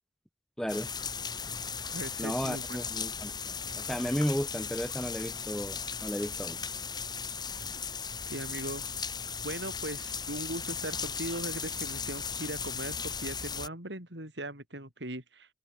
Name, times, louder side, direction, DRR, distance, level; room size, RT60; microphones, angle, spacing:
voice 1, 0.6-0.9 2.2-6.6, equal, 5° left, 3.2 m, -34 dB
sound 1, 0.7-13.7, left 6 dB, 25° left, 1.9 m, -37 dB
voice 2, 1.9-2.8 8.3-8.8 9.4-15.5, right 1 dB, 70° right, 7.2 m, -39 dB
head